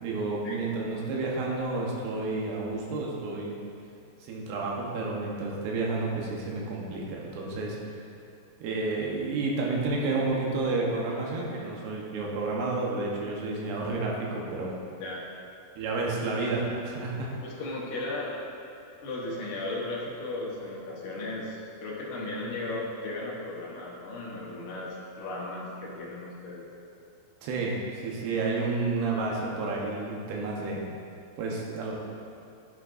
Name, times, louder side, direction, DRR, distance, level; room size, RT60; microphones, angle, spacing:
voice 1, 0.0-3.6 4.2-7.8 8.6-14.7 15.8-17.3 27.4-30.9 31.4-32.0, right 3 dB, 75° right, -3 dB, 2.9 m, -30 dB
voice 2, 17.4-18.4 19.0-26.6, left 2 dB, 80° left, -5 dB, 1.7 m, -36 dB
10.5 x 6.2 x 2.5 m, 2.6 s
omnidirectional pair, 5.1 m